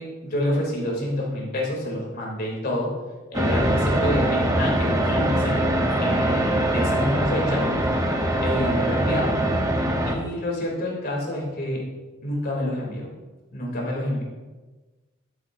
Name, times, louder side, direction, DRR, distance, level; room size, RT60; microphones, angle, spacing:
voice 1, 0.0-2.9 3.3-5.6 6.0-7.6 8.4-9.4 10.1-11.8 12.2-13.1 13.5-14.2, left 1 dB, 50° left, -2 dB, 3.0 m, -28 dB
sound 1, 3.3-10.2, right 1 dB, 15° right, 0.9 m, -22 dB
12.5 x 8.5 x 2.7 m, 1.2 s
head